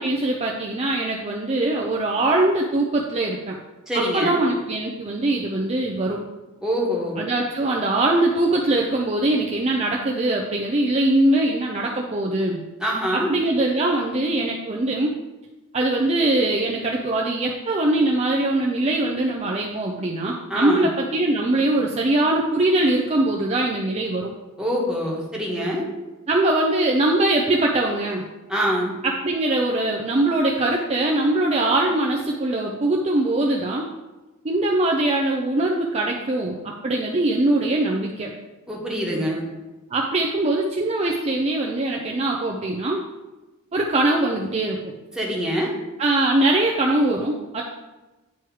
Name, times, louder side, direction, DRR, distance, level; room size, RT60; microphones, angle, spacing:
voice 1, 0.0-3.6 3.9-6.2 7.2-12.6 13.1-15.1 15.7-24.3 26.3-28.2 29.0-33.9 34.4-38.3 39.9-43.0 43.7-44.9 46.0-47.6, right 2 dB, 30° right, -1 dB, 0.5 m, -22 dB
voice 2, 3.9-4.4 6.6-7.2 12.8-13.3 20.5-20.9 24.6-25.8 28.5-28.9 38.7-39.4 45.1-45.7, equal, 5° right, -4 dB, 1.3 m, -24 dB
9.2 x 3.1 x 4.7 m, 1.1 s
head